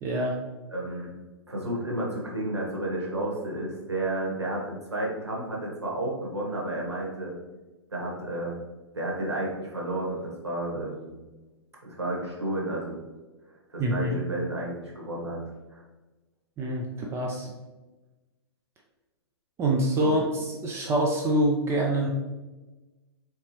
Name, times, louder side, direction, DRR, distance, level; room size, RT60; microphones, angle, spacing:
voice 1, 0.0-0.4 13.8-14.1 16.6-17.5 19.6-20.2 20.6-22.1, right 1 dB, 20° right, -1 dB, 0.5 m, -25 dB
voice 2, 0.7-1.1 1.5-7.3 7.9-8.6 8.9-11.1 11.8-13.0 13.7-15.4 15.7-15.8 20.0-20.1, right 1 dB, 85° right, -3 dB, 1.3 m, -31 dB
4.4 x 2.9 x 3.1 m, 1.2 s
figure-of-eight pair, 110°, 14 cm